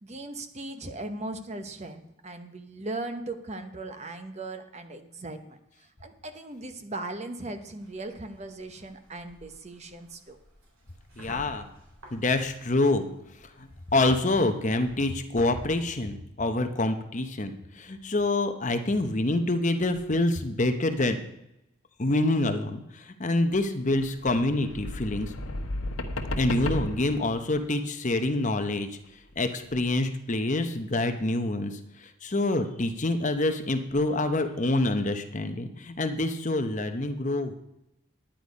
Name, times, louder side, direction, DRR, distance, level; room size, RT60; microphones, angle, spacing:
voice 1, 0.0-10.4, right 2 dB, 30° right, 8 dB, 0.9 m, -38 dB
sound 1, 7.7-15.0, equal, 80° right, 3.8 m, -53 dB
voice 2, 11.2-11.7 12.1-13.1 13.6-21.2 22.0-25.3 26.4-28.9 29.4-37.5, left 2 dB, 35° left, 7 dB, 0.8 m, -26 dB
sound 2, 24.0-27.6 29.3-29.4, left 1 dB, 80° left, 1.1 m, -34 dB
10.5 x 9.8 x 5.2 m, 0.85 s
head